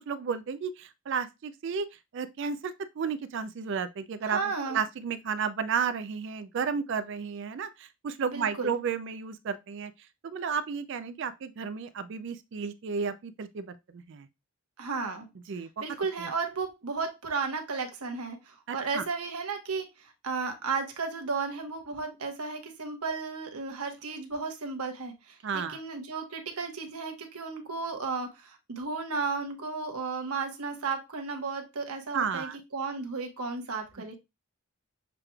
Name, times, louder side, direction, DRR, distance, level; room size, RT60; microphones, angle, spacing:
voice 1, 0.1-1.9 2.1-9.9 10.2-14.3 15.5-15.7 16.2-16.3 18.7-19.0 25.4-25.8 32.1-32.6, right 6 dB, 55° right, 0.3 m, -33 dB
voice 2, 4.2-4.8 8.3-8.7 14.8-15.3 15.8-34.1, right 4 dB, 85° right, 1.1 m, -34 dB
6.7 x 3.1 x 2.2 m
head